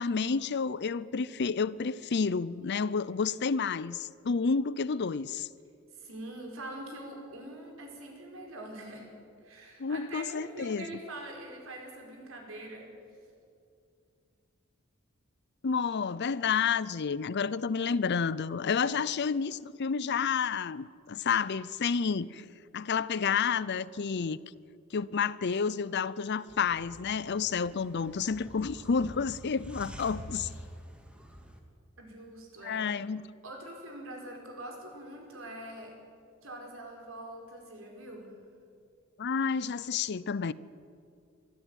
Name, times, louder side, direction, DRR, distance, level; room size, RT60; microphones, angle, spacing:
voice 1, 0.0-5.5 9.8-10.9 15.6-22.4 22.7-24.4 24.9-30.5 32.6-33.3 39.2-40.5, left 5 dB, 55° left, 0.5 m, -30 dB
voice 2, 5.9-9.1 9.4-12.9 18.7-19.0 32.0-32.9 33.4-35.9 36.4-38.3, right 1 dB, 75° right, 4.9 m, -44 dB
sound 1, 26.5-31.6, equal, 5° right, 2.1 m, -47 dB
23.0 x 13.5 x 9.2 m
head